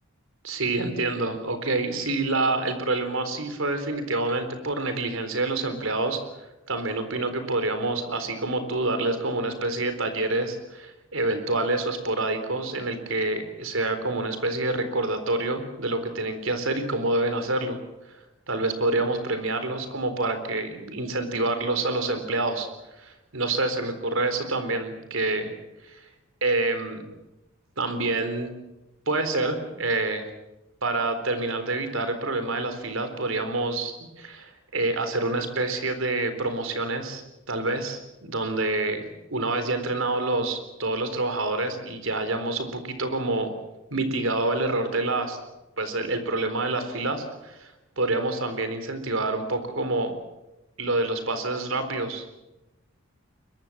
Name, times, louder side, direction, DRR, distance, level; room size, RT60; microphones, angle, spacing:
voice 1, 0.4-6.2 6.7-17.8 18.5-22.7 23.0-25.5 25.9-26.0 26.4-27.0 27.8-28.5 29.1-30.3 30.8-37.2 37.5-43.5 43.9-45.4 45.8-50.1 50.8-52.3, right 2 dB, 70° right, 9 dB, 4.0 m, -27 dB
22.5 x 22.0 x 7.4 m, 0.98 s
head